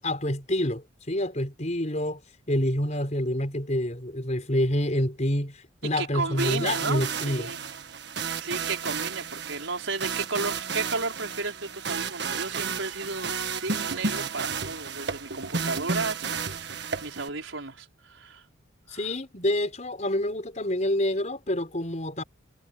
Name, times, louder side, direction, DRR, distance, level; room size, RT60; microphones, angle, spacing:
voice 1, 0.0-2.2 2.5-7.5 18.9-22.2, left 1 dB, 35° left, 5.0 m, -27 dB
voice 2, 6.0-7.6 8.1-13.3 13.6-18.4 18.9-19.1, right 3 dB, 85° right, 5.1 m, -33 dB
sound 1, 6.4-17.3, right 5 dB, 60° right, 1.6 m, -32 dB
head